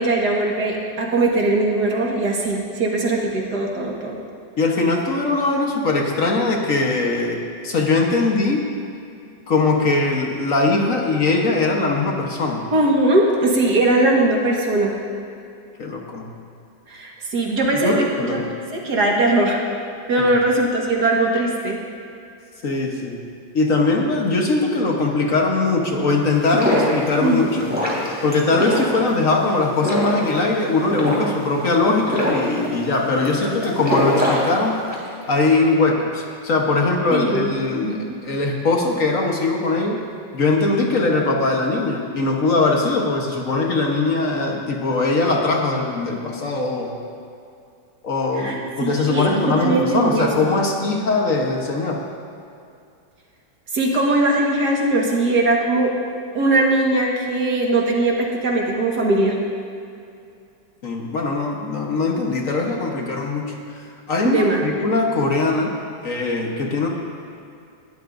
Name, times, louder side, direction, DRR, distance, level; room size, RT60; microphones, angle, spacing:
voice 1, 0.0-4.2 12.7-15.0 16.9-18.0 18.3-18.4 18.7-19.6 20.1-21.8 27.2-27.6 37.1-37.5 37.8-38.2 48.4-50.5 53.7-55.9 56.3-59.4 64.2-64.8, right 2 dB, 65° right, -1 dB, 2.1 m, -20 dB
voice 2, 4.6-8.7 9.5-12.6 15.8-16.3 17.8-18.5 22.6-23.2 23.5-27.7 28.2-34.8 35.3-40.0 40.3-47.0 48.0-52.0 60.8-63.6 64.1-65.7 66.0-66.9, left 3 dB, 50° left, 0 dB, 1.5 m, -21 dB
sound 1, 26.3-35.1, equal, 5° right, 2.9 m, -25 dB
20.5 x 12.5 x 2.6 m, 2.5 s
omnidirectional pair, 1.9 m